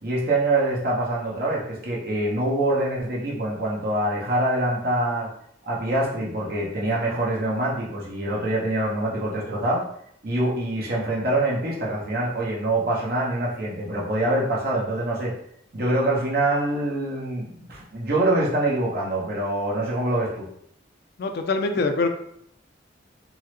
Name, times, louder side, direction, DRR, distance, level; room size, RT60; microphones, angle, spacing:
voice 1, 0.0-5.3 5.7-9.8 10.2-15.3 15.7-20.5, right 1 dB, 55° right, -5 dB, 1.0 m, -25 dB
voice 2, 21.2-22.1, left 3 dB, 55° left, 6 dB, 0.4 m, -23 dB
3.6 x 2.1 x 3.1 m, 0.70 s
head